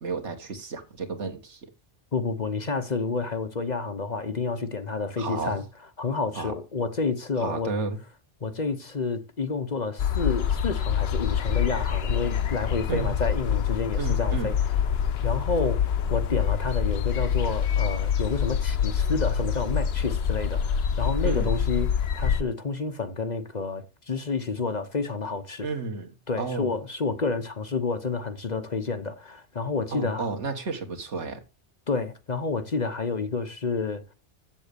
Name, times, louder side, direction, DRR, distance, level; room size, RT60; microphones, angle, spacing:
voice 1, 0.0-1.7 5.2-5.6 6.4-6.5 7.4-8.0 12.9-13.1 14.0-14.5 21.2-21.5 25.6-26.7 29.9-31.4, right 4 dB, 75° right, 1.8 m, -32 dB
voice 2, 2.1-5.6 6.0-7.7 8.4-14.5 15.2-15.8 16.1-21.9 22.1-25.7 26.3-30.3 31.9-34.0, left 4 dB, 40° left, 1.0 m, -29 dB
sound 1, 10.0-22.4, left 8 dB, 65° left, 0.9 m, -26 dB
7.7 x 7.3 x 6.8 m
omnidirectional pair, 1.2 m